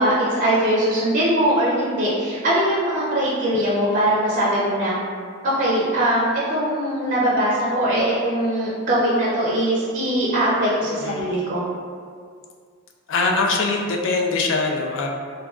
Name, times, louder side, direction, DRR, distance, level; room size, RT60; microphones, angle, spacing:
voice 1, 0.0-4.9 5.4-11.6, right 1 dB, 40° right, -6 dB, 0.4 m, -21 dB
voice 2, 10.8-11.4 13.1-15.1, left 3 dB, 65° left, 1 dB, 0.4 m, -23 dB
3.5 x 2.2 x 2.3 m, 2.1 s
head